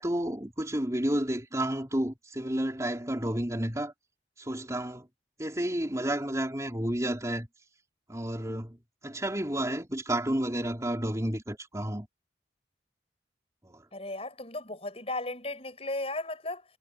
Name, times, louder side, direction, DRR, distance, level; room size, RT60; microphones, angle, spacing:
voice 1, 0.0-3.9 4.4-5.1 5.4-7.5 8.1-8.8 9.0-12.1 13.6-13.8, right 1 dB, 15° right, 3.7 m, -31 dB
voice 2, 13.9-16.6, left 2 dB, 30° left, 6.8 m, -35 dB
head